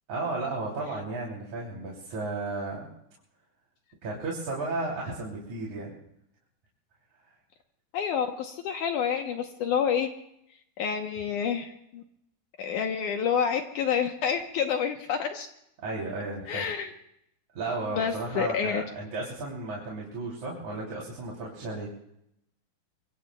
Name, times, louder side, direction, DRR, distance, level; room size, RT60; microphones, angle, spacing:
voice 1, 0.1-2.9 4.0-5.9 15.8-16.7 17.5-21.9, right 3 dB, 50° right, -4 dB, 4.2 m, -34 dB
voice 2, 7.9-10.1 10.8-12.0 12.6-15.5 16.5-16.9 17.9-18.8, left 7 dB, 70° left, 5 dB, 2.0 m, -28 dB
24.5 x 24.0 x 2.3 m, 0.78 s
omnidirectional pair, 4.5 m